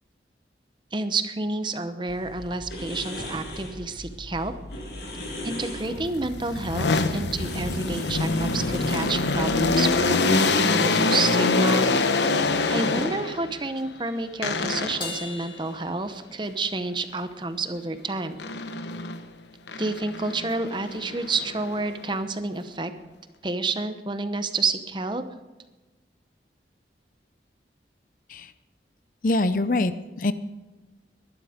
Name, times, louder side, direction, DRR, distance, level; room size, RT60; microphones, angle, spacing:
voice 1, 0.9-4.5 5.4-12.4 12.7-18.4 19.8-22.9 23.4-25.2, right 3 dB, 25° right, 9 dB, 0.9 m, -29 dB
sound 1, 2.1-9.8, equal, 65° left, 6.6 m, -37 dB
sound 2, 5.9-13.5 14.4-15.2 18.4-19.2 19.7-22.1, left 3 dB, 80° left, 1.1 m, -25 dB
Crash cymbal, 15.0-16.7, left 3 dB, 25° left, 2.7 m, -38 dB
voice 2, 29.2-30.3, left 2 dB, 50° left, 13 dB, 0.7 m, -24 dB
21.0 x 11.5 x 5.1 m, 1.2 s
head